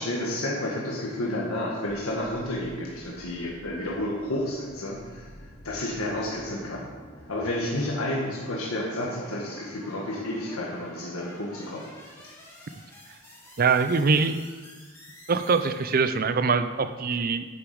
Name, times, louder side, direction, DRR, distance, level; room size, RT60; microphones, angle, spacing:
voice 1, 0.0-5.3 5.6-6.9 7.2-11.9, left 1 dB, 90° left, -3 dB, 1.6 m, -31 dB
sound 1, 2.9-16.3, equal, 15° left, 2.1 m, -49 dB
voice 2, 13.6-14.4 15.3-17.5, right 4 dB, 45° right, 11 dB, 0.5 m, -23 dB
9.4 x 7.0 x 5.1 m, 1.4 s
head